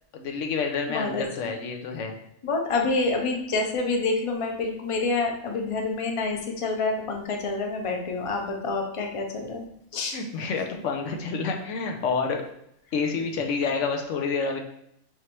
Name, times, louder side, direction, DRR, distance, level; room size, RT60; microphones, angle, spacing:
voice 1, 0.1-2.1 10.1-12.4 12.9-14.6, left 5 dB, 90° left, 3 dB, 1.0 m, -28 dB
voice 2, 0.9-1.2 2.4-9.7 9.9-10.2, left 3 dB, 35° left, 2 dB, 0.6 m, -27 dB
5.0 x 3.0 x 3.0 m, 0.75 s
omnidirectional pair, 1.2 m